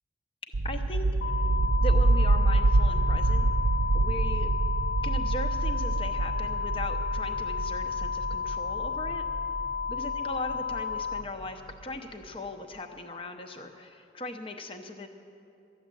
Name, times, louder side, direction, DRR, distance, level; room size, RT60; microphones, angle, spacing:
sound 1, 0.5-11.2, right 2 dB, 45° right, 0.4 m, -27 dB
voice 1, 0.6-1.4 1.8-3.5 3.9-4.5 5.0-9.2 9.9-15.1, left 1 dB, 30° left, 6 dB, 0.8 m, -39 dB
sound 2, 1.2-11.2, left 6 dB, 65° left, 0.4 m, -33 dB
13.0 x 7.3 x 9.0 m, 2.5 s
head